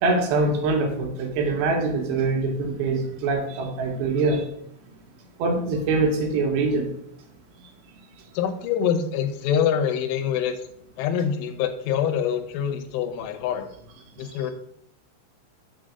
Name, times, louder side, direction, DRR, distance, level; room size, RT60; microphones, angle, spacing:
voice 1, 0.0-4.5 5.4-6.9 14.2-14.4, right 3 dB, 70° right, 2 dB, 3.1 m, -24 dB
voice 2, 8.3-10.6 11.0-13.7 14.2-14.5, left 8 dB, 85° left, 8 dB, 3.3 m, -25 dB
7.1 x 3.7 x 6.4 m, 0.73 s
omnidirectional pair, 5.5 m